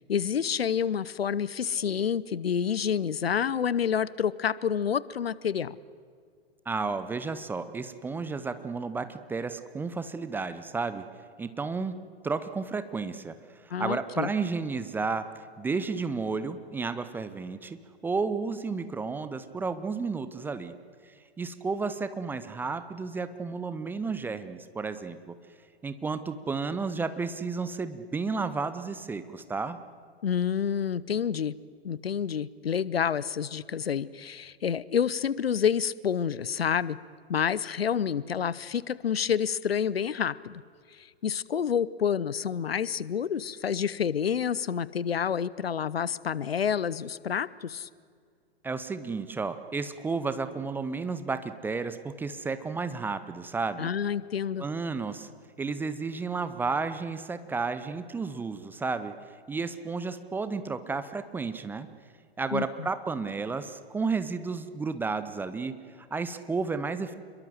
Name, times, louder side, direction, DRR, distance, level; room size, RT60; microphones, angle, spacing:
voice 1, 0.1-5.8 13.7-14.3 30.2-31.5 31.8-37.0 37.3-40.6 41.0-47.9 53.8-54.6 62.5-62.9, left 8 dB, 65° left, 20 dB, 0.8 m, -28 dB
voice 2, 6.7-11.0 11.4-11.9 12.2-13.4 13.6-15.3 15.6-20.7 21.4-25.4 25.8-29.8 48.6-53.9 54.6-55.3 55.6-59.1 59.5-61.9 62.4-67.1, right 4 dB, 5° right, 11 dB, 0.7 m, -32 dB
28.0 x 22.0 x 7.8 m, 2.2 s
figure-of-eight pair, 115°, 33 cm